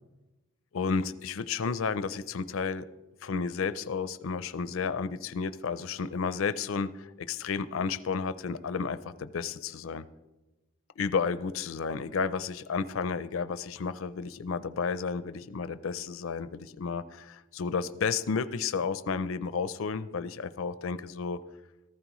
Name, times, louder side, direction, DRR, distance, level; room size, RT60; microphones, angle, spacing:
voice 1, 0.7-2.9 3.2-10.0 11.0-21.4, left 5 dB, 75° left, 14 dB, 0.5 m, -32 dB
15.0 x 14.5 x 3.1 m, 1.1 s
head